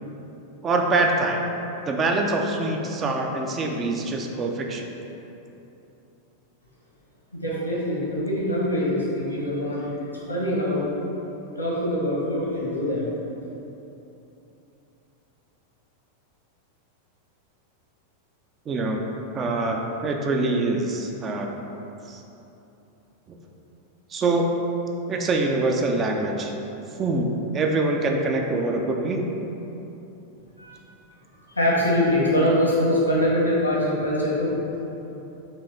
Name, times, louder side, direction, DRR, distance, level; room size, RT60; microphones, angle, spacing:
voice 1, 0.6-1.4 1.9-4.9 18.7-19.0 19.3-21.5 22.1-22.2 23.3-23.4 24.1-24.5 25.1-26.5 27.0-27.3 27.5-29.2, right 2 dB, 25° right, 2 dB, 0.4 m, -24 dB
voice 2, 7.3-9.9 10.3-10.9 11.6-13.1 30.6-30.7 31.5-34.5, left 1 dB, 85° left, -6 dB, 1.1 m, -23 dB
4.4 x 3.0 x 3.3 m, 3.0 s
figure-of-eight pair, 90°, 0 cm